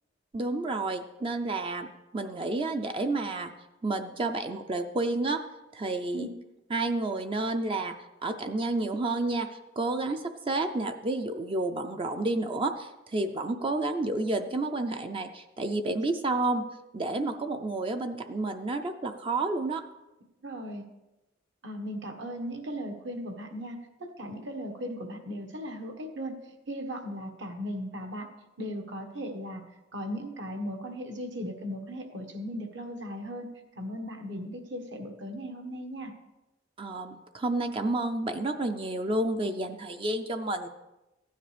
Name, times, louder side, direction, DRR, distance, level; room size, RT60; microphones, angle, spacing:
voice 1, 0.3-3.5 3.8-5.4 5.7-6.3 6.7-7.9 8.2-9.5 9.8-16.6 16.9-19.8 36.8-40.7, right 2 dB, 30° right, 6 dB, 0.4 m, -30 dB
voice 2, 20.4-20.8 21.6-26.4 26.7-28.3 28.6-33.5 33.8-36.1, equal, 70° right, 4 dB, 1.4 m, -37 dB
15.0 x 10.0 x 3.3 m, 1.0 s
head